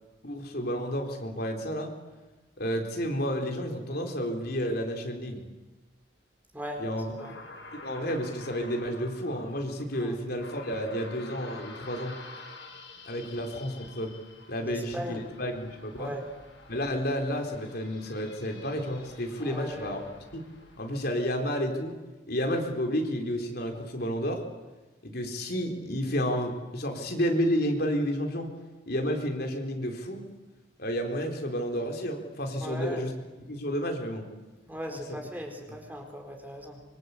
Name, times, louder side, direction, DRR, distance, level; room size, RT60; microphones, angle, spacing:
voice 1, 0.2-1.9 2.6-5.4 6.8-7.1 7.8-12.2 13.0-14.1 14.5-16.1 16.7-20.0 20.3-20.4 20.8-22.0 22.3-24.4 25.0-28.5 28.9-30.3 30.8-33.1 33.5-34.3, equal, 50° left, 3 dB, 4.0 m, -31 dB
voice 2, 6.5-6.8 7.2-7.3 10.0-10.2 14.6-15.2 16.0-16.3 19.4-20.0 32.6-33.0 34.7-36.8, equal, 10° right, 3 dB, 4.3 m, -38 dB
sound 1, 7.2-21.4, left 3 dB, 70° left, 7.7 m, -49 dB
26.0 x 25.0 x 8.5 m, 1.2 s
head